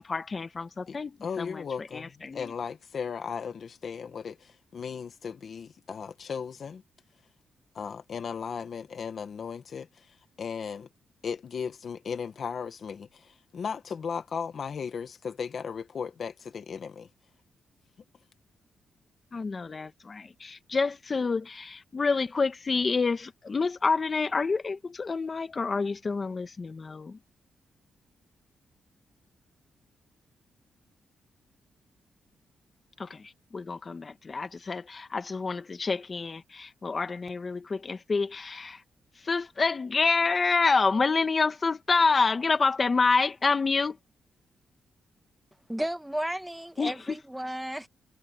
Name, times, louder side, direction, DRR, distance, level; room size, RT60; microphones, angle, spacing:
voice 1, 0.0-2.5 19.3-27.2 33.0-38.8 39.2-44.0 46.8-46.9, left 4 dB, 35° left, 1.8 m, -28 dB
voice 2, 0.9-6.8 7.8-10.9 11.2-17.1, left 6 dB, 50° left, 1.8 m, -36 dB
voice 3, 45.7-47.9, right 1 dB, 5° right, 1.7 m, -33 dB
cardioid pair, 115°, 0 cm